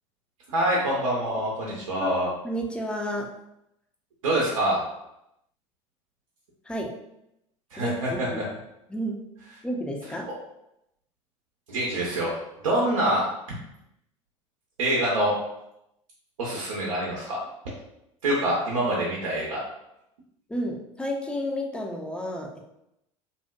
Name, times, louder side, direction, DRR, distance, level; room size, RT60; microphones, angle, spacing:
voice 1, 0.5-2.3 4.2-4.8 7.7-8.4 11.7-12.3 12.6-13.3 14.8-15.3 16.4-17.4 18.2-19.6, right 1 dB, 75° right, -4 dB, 0.6 m, -25 dB
voice 2, 2.4-3.3 6.7-6.9 7.8-8.4 8.9-9.2 9.6-10.3 20.5-22.6, equal, 5° left, 0 dB, 0.4 m, -31 dB
2.6 x 2.1 x 2.2 m, 0.83 s
figure-of-eight pair, 75°, 17 cm